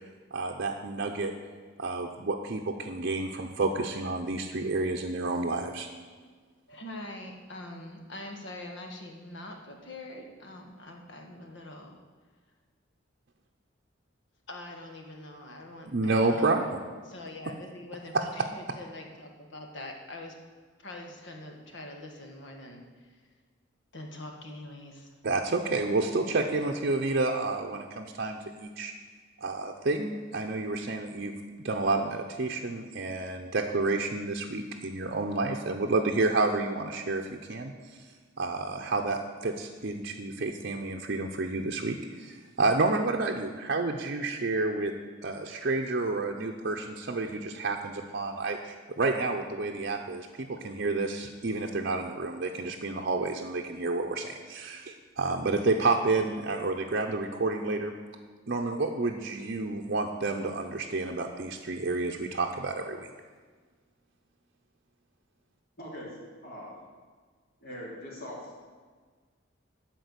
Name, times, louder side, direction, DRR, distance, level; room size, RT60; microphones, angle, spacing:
voice 1, 0.3-1.3 1.8-5.9 15.9-16.6 18.1-18.2 25.2-28.9 29.4-37.7 38.4-44.9 45.2-57.9 58.5-63.1, right 3 dB, 55° right, 0 dB, 0.7 m, -30 dB
voice 2, 6.7-12.0 14.5-16.7 17.0-20.4 20.8-23.2 23.9-25.1, left 1 dB, 65° left, 2 dB, 1.6 m, -44 dB
voice 3, 65.8-66.1 66.4-66.7 67.6-68.5, equal, 50° left, -5 dB, 3.2 m, -41 dB
12.5 x 4.5 x 8.1 m, 1.5 s
head